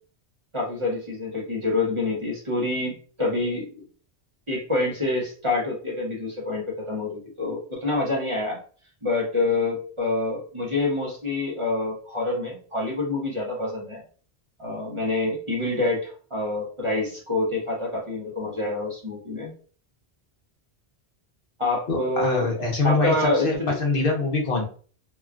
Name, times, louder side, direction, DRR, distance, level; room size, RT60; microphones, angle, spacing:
voice 1, 0.5-3.8 4.5-8.6 9.0-14.0 14.6-19.5 21.6-22.5 22.8-23.8, left 2 dB, 30° right, -4 dB, 0.8 m, -27 dB
voice 2, 21.9-24.7, left 3 dB, 60° left, 0 dB, 0.9 m, -24 dB
3.0 x 2.3 x 2.4 m, 0.42 s
omnidirectional pair, 1.1 m